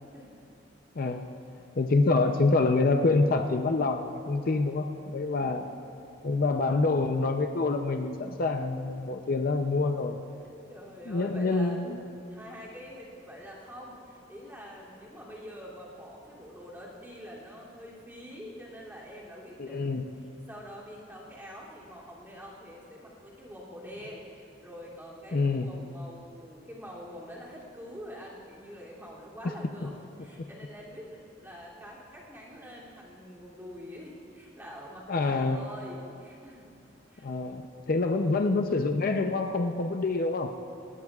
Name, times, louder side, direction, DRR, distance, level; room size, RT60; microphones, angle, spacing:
voice 1, 0.1-0.5 0.9-1.1 5.2-5.7 10.7-11.9 12.3-36.7 37.1-37.3 37.8-38.3, equal, 10° right, -6 dB, 2.8 m, -45 dB
voice 2, 1.0-1.3 1.8-5.7 6.2-10.2 11.1-12.0 19.6-20.0 25.3-25.7 35.1-35.6 37.2-40.5, left 3 dB, 50° left, 5 dB, 0.6 m, -26 dB
19.5 x 19.0 x 2.4 m, 2.8 s
head